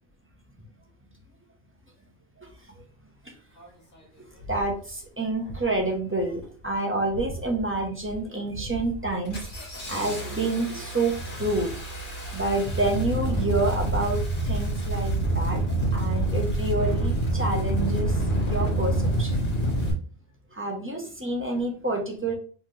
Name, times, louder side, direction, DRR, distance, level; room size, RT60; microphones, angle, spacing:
Engine starting, 3.6-3.7 4.4-4.7 5.4-5.8 6.1-6.6 7.1-7.6 8.0-8.2 8.5-19.9, right 1 dB, 45° left, 1.4 m, -27 dB
voice 1, 4.5-11.7 12.3-15.6 15.9-18.2 18.5-19.4 20.5-22.3, right 2 dB, 15° right, 1 dB, 0.6 m, -28 dB
4.2 x 2.8 x 3.2 m, 0.41 s
omnidirectional pair, 1.3 m